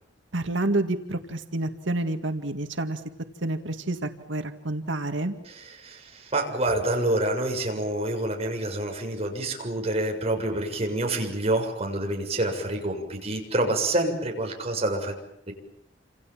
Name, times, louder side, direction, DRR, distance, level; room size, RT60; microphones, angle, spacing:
voice 1, 0.3-3.0 3.4-5.4, right 2 dB, 80° right, 7 dB, 2.0 m, -29 dB
voice 2, 5.5-15.2 15.5-15.6, right 1 dB, 35° right, 2 dB, 6.9 m, -27 dB
29.0 x 27.5 x 7.5 m, 0.72 s
head